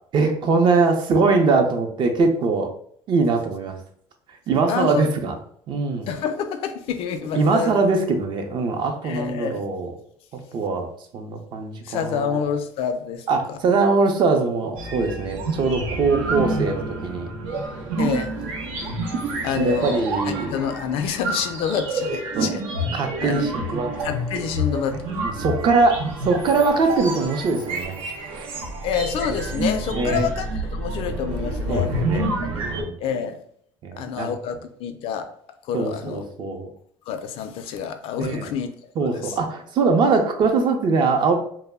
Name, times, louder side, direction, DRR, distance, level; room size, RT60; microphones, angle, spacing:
voice 1, 0.1-2.7 3.1-3.8 4.5-5.3 5.7-6.1 7.3-9.9 10.5-12.4 13.3-17.3 19.6-20.5 22.4-22.5 22.9-23.9 25.2-28.0 29.9-30.3 31.7-32.3 32.6-32.9 33.8-34.3 35.7-36.7 38.2-38.5 39.0-41.3, right 4 dB, 50° right, 0.5 m, -22 dB
voice 2, 4.7-5.0 6.1-7.8 9.0-9.6 11.8-13.6 18.0-18.3 18.9-19.1 19.4-20.0 20.4-22.6 23.2-23.5 24.0-25.0 28.8-31.9 32.4-32.6 33.0-33.4 34.0-35.3 35.6-36.2 37.1-38.7 39.0-39.4, left 7 dB, 70° left, 0.4 m, -28 dB
sound 1, 14.8-32.8, right 1 dB, 90° right, 0.6 m, -28 dB
2.3 x 2.0 x 3.4 m
cardioid pair, 105°, 10 cm